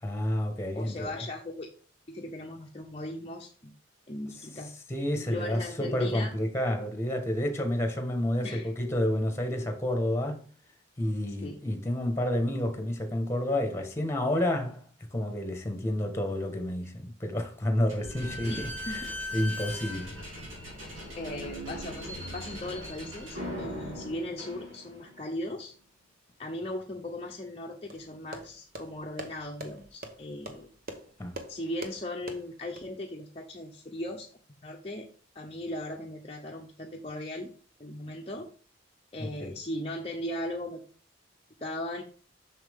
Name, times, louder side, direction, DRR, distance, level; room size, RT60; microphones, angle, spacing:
voice 1, 0.0-1.1 4.9-10.5 11.0-18.5 18.9-19.0 19.3-20.2 31.2-31.4 39.2-39.5, left 1 dB, 15° left, 1.4 m, -30 dB
voice 2, 0.7-1.7 2.1-3.7 4.1-4.7 5.3-6.3 8.4-8.7 11.4-11.6 18.5-19.1 21.2-25.7 26.4-30.7 31.5-34.3 34.6-35.1 35.3-37.5 37.8-38.5 39.1-40.8 41.6-42.0, left 1 dB, 30° left, 0.8 m, -38 dB
Slam / Squeak, 17.9-25.2, left 1 dB, 90° right, 3.6 m, -39 dB
sound 1, 27.9-32.8, right 1 dB, 50° right, 1.1 m, -44 dB
7.1 x 6.3 x 3.6 m
head